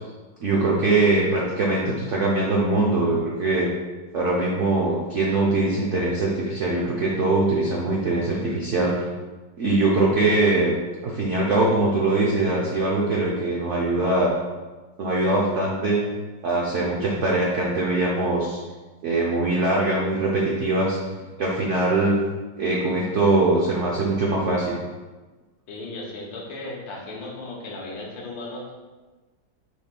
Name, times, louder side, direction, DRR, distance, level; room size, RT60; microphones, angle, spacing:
voice 1, 0.4-3.7 4.1-9.0 9.6-10.7 11.0-14.3 15.0-16.0 16.4-18.6 19.0-21.0 21.4-22.2 22.6-24.8, right 2 dB, 75° right, -4 dB, 0.6 m, -22 dB
voice 2, 25.7-28.7, left 2 dB, 90° left, -2 dB, 1.7 m, -36 dB
6.3 x 3.5 x 2.2 m, 1.3 s
omnidirectional pair, 2.1 m